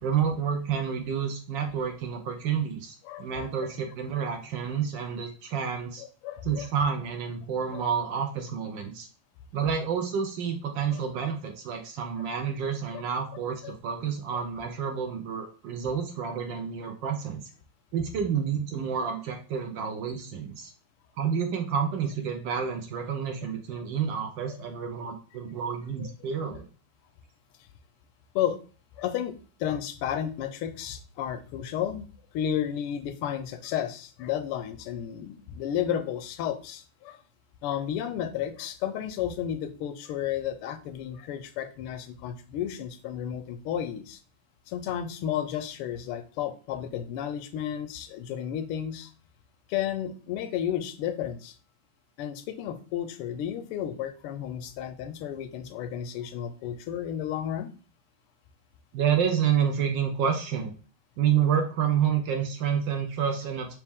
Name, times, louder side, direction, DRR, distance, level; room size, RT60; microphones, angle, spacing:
voice 1, 0.0-6.0 6.4-9.1 9.5-17.4 17.9-20.7 21.2-26.7 58.9-60.7 61.2-63.8, right 7 dB, 70° right, 4 dB, 1.2 m, -29 dB
voice 2, 3.0-3.7 6.0-6.7 7.7-7.8 10.9-11.0 12.9-13.0 13.6-13.7 14.3-14.4 23.7-23.8 26.0-26.1 28.3-28.6 29.0-32.1 32.3-37.2 37.6-44.2 44.7-49.1 49.7-51.5 52.2-57.7, left 10 dB, 90° left, 10 dB, 1.5 m, -32 dB
4.1 x 3.1 x 3.5 m, 0.39 s
omnidirectional pair, 2.4 m